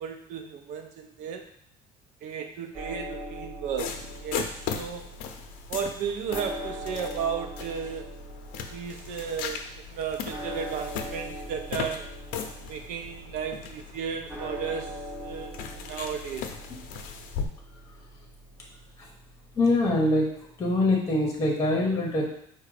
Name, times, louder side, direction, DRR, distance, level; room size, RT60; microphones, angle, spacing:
voice 1, 0.0-1.5 2.2-5.1 5.7-8.2 8.7-12.1 12.7-15.0 15.2-16.5, right 7 dB, 70° right, 5 dB, 0.6 m, -34 dB
sound 1, 2.7-20.6, equal, 15° right, 0.7 m, -42 dB
sound 2, 3.8-17.5, left 7 dB, 85° left, 0.5 m, -38 dB
voice 2, 19.6-20.3 20.6-22.2, left 2 dB, 25° left, -1 dB, 0.9 m, -23 dB
4.8 x 2.2 x 4.8 m, 0.68 s
cardioid pair, 170°, 14 cm